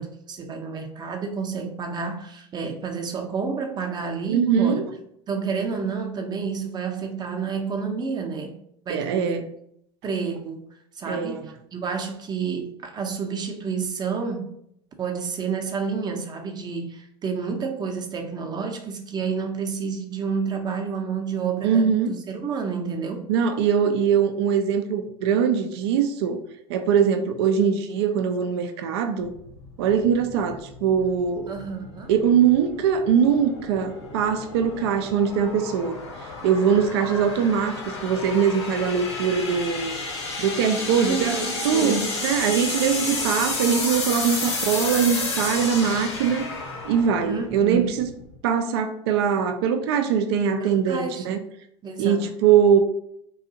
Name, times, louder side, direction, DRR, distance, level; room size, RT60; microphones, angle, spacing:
voice 1, 0.0-4.8 5.3-8.6 8.9-9.4 10.0-10.6 11.0-14.5 15.0-21.9 22.3-23.3 31.5-32.1 41.0-42.1 47.2-47.9 50.6-51.4 51.8-52.3, right 5 dB, 30° right, 4 dB, 0.6 m, -29 dB
voice 2, 4.3-4.9 8.9-9.5 11.1-11.5 21.6-22.1 23.3-26.4 26.7-29.3 29.8-31.5 32.1-36.0 36.4-39.9 40.4-41.4 41.6-46.5 46.8-48.1 48.4-51.4 52.0-52.8, right 7 dB, 75° right, 6 dB, 0.4 m, -22 dB
sound 1, 29.2-48.3, left 3 dB, 85° left, 0.9 m, -32 dB
2.5 x 2.3 x 2.7 m, 0.71 s
hypercardioid pair, 85°, 14 cm